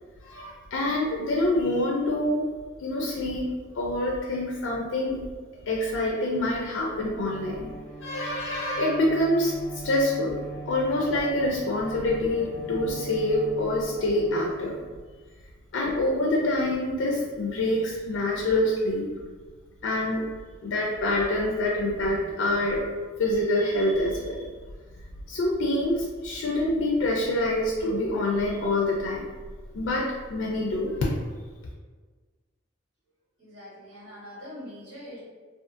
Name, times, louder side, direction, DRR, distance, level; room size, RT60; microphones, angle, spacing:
voice 1, 0.2-2.5 2.8-5.2 5.7-7.7 8.0-10.4 10.7-14.8 15.7-19.1 19.8-20.2 20.6-22.8 23.2-24.5 25.3-29.2 29.7-31.2, left 1 dB, 80° left, -3 dB, 0.4 m, -26 dB
Bowed string instrument, 6.8-15.2, right 2 dB, 45° right, 0.5 m, -42 dB
voice 2, 33.4-35.2, left 1 dB, 85° right, -8 dB, 1.3 m, -43 dB
2.4 x 2.3 x 2.5 m, 1.4 s
head